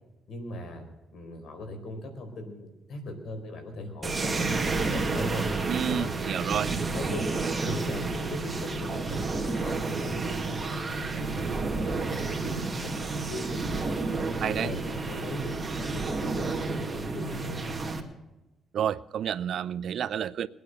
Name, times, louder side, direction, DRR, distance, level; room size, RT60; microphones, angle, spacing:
voice 1, 0.3-0.9 1.1-5.4 5.9-6.1 6.9-7.3 7.6-11.5 11.8-14.0 14.3-17.8, left 1 dB, 70° left, 6 dB, 4.3 m, -39 dB
sound 1, 4.0-18.0, right 3 dB, 25° right, 2.2 m, -30 dB
voice 2, 5.7-6.7 14.4-14.7 18.7-20.5, right 9 dB, 65° right, 16 dB, 0.5 m, -30 dB
21.5 x 9.5 x 6.6 m, 1.1 s
cardioid pair, 90°, 0 cm